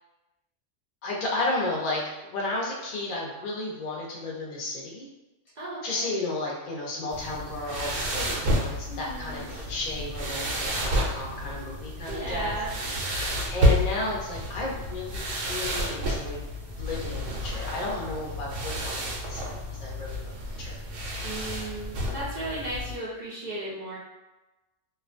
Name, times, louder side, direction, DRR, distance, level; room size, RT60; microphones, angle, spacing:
voice 1, 1.0-5.1 5.8-12.6 13.0-16.4 16.8-20.3 20.6-20.8, left 2 dB, 50° left, -4 dB, 0.5 m, -33 dB
voice 2, 5.6-6.1 8.9-9.5 12.1-12.7 21.2-24.0, right 1 dB, 55° right, -8 dB, 0.5 m, -35 dB
sound 1, 7.1-22.9, equal, 75° right, 0.9 m, -30 dB
2.4 x 2.1 x 2.4 m, 1.1 s
omnidirectional pair, 1.3 m